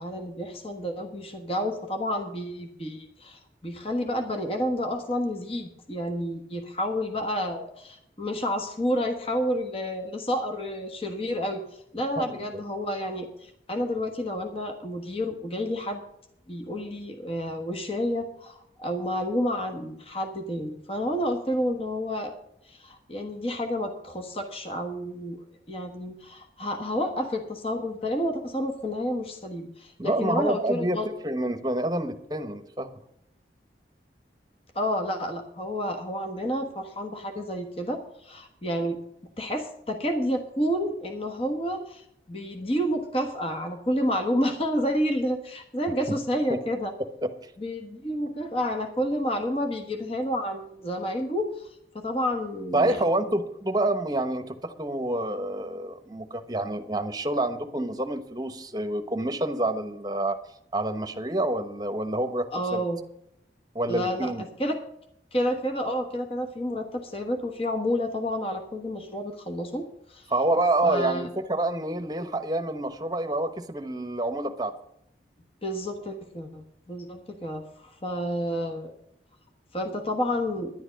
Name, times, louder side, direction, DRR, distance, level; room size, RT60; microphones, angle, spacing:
voice 1, 0.0-11.6 11.9-16.0 16.5-22.3 22.6-25.4 25.7-31.1 34.7-39.0 39.4-46.9 47.6-51.7 51.9-53.4 62.5-63.0 63.9-64.8 65.3-70.3 70.8-71.3 75.6-78.9 79.7-80.7, equal, 30° left, 4 dB, 1.3 m, -30 dB
voice 2, 12.2-12.6 30.0-31.0 31.2-32.9 47.2-47.3 52.7-60.4 60.7-62.8 63.7-64.4 70.3-74.7, right 1 dB, 20° right, 8 dB, 1.0 m, -27 dB
11.0 x 11.0 x 5.2 m, 0.75 s
head